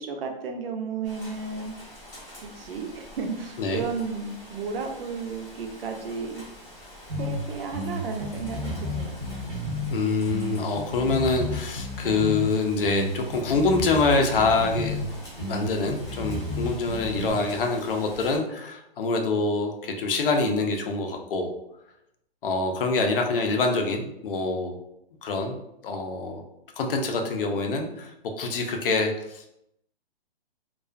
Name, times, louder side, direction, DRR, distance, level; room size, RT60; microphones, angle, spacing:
voice 1, 0.0-1.7 2.3-6.4 7.2-9.4, right 5 dB, 70° right, 3 dB, 0.6 m, -33 dB
Rain, 1.0-18.4, left 1 dB, 10° left, 0.7 m, -45 dB
sound 1, 7.1-7.4 7.7-9.9 10.3-12.5 12.8-15.0 15.4-17.3, left 1 dB, 25° right, 0.5 m, -32 dB
voice 2, 9.9-15.0 15.4-21.5 22.4-24.7 25.2-25.6 25.8-26.4 26.8-29.5, left 3 dB, 65° left, 3 dB, 0.5 m, -25 dB
2.4 x 2.3 x 2.2 m, 0.80 s
hypercardioid pair, 160°, 30 cm